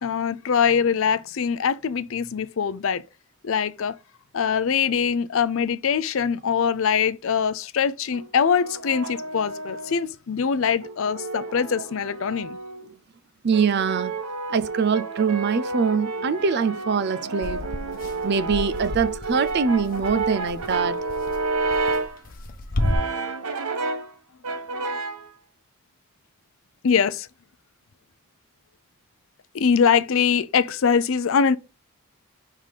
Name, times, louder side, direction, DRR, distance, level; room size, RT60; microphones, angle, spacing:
voice 1, 0.0-3.0 3.4-4.0 4.3-12.6 26.8-27.3 29.5-31.6, left 6 dB, 65° left, 0.5 m, -23 dB
Brass instrument, 8.1-10.1 10.8-12.9 13.5-22.2 22.8-24.1 24.4-25.3, right 3 dB, 90° right, 1.0 m, -30 dB
voice 2, 13.4-14.1 14.5-21.0 23.0-23.3, right 5 dB, 50° right, 0.5 m, -24 dB
sound 1, 17.4-22.9, left 1 dB, 40° left, 1.0 m, -31 dB
5.6 x 3.6 x 5.0 m
head